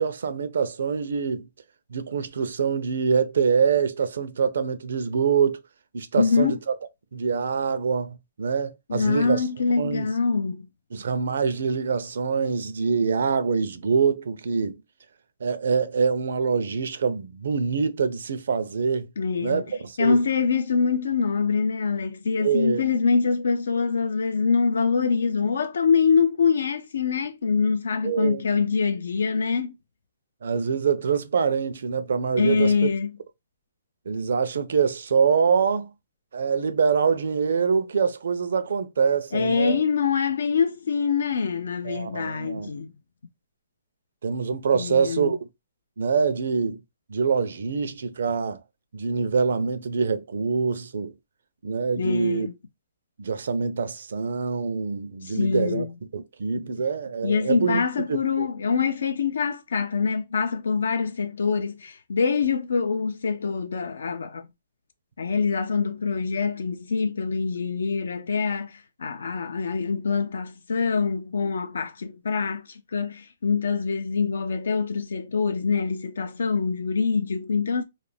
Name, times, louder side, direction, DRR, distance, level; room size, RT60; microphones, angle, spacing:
voice 1, 0.0-1.5 1.9-5.6 5.9-6.7 7.1-9.4 9.8-10.1 10.9-14.8 15.4-19.1 19.4-20.2 22.4-22.8 28.0-28.4 30.4-32.9 34.1-35.9 36.3-39.8 41.8-42.7 44.2-45.4 46.0-46.8 47.1-48.6 48.9-51.1 51.6-52.5 53.2-55.9 56.1-57.8 58.1-58.5, right 6 dB, 75° right, 0.5 m, -25 dB
voice 2, 6.2-6.6 8.9-10.7 19.2-19.6 20.0-29.7 32.4-33.1 39.3-42.9 44.7-45.3 52.0-52.5 55.2-55.9 57.2-64.5 65.2-68.7 69.0-72.6 72.9-77.8, left 5 dB, 80° left, 0.4 m, -24 dB
2.4 x 2.1 x 3.2 m
hypercardioid pair, 155°, 0 cm